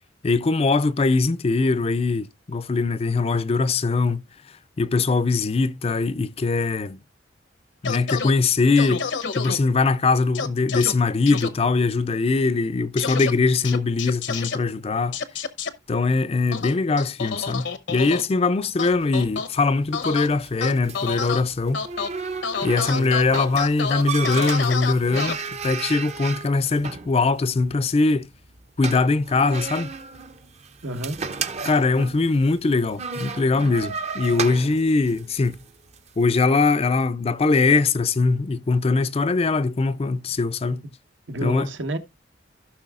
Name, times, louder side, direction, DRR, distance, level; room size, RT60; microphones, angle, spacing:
voice 1, 0.2-4.2 4.8-7.0 7.8-9.1 9.4-15.2 15.9-21.8 22.6-25.4 25.6-28.3 28.8-29.9 31.6-35.6 36.2-40.9 41.4-41.7, left 3 dB, 35° left, 0.4 m, -21 dB
sound 1, 7.8-8.3 8.8-9.6 10.3-10.9 11.3-11.5 13.0-13.3 13.6-14.6 15.1-15.7 16.5-18.2 18.8-19.5 19.9-20.3 20.6-21.4 21.7-22.1 22.4-25.3, left 5 dB, 75° left, 0.9 m, -28 dB
sound 2, 18.9-36.1, right 5 dB, 35° right, 0.6 m, -35 dB
voice 2, 22.8-23.1 30.8-31.2 41.3-42.0, right 1 dB, 75° right, 1.2 m, -29 dB
16.0 x 6.0 x 2.4 m
head